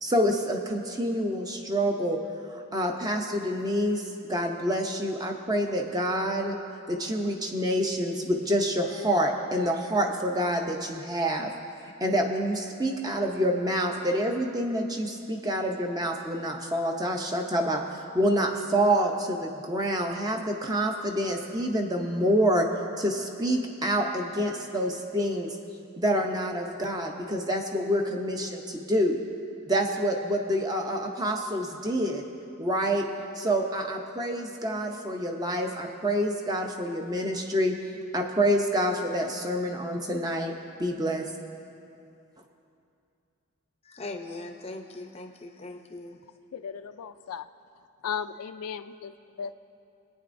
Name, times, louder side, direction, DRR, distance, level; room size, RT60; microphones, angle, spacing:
voice 1, 0.0-2.2 2.5-4.0 4.3-6.6 6.9-11.5 12.0-22.7 23.0-25.6 26.0-29.2 29.7-32.2 32.6-33.1 33.4-40.5 40.8-41.2, equal, 15° right, 3 dB, 0.6 m, -27 dB
voice 2, 43.8-46.2, left 2 dB, 25° left, 5 dB, 0.6 m, -40 dB
voice 3, 46.5-47.5 48.0-49.5, left 7 dB, 85° left, 10 dB, 0.4 m, -36 dB
23.5 x 9.0 x 2.6 m, 2.5 s
head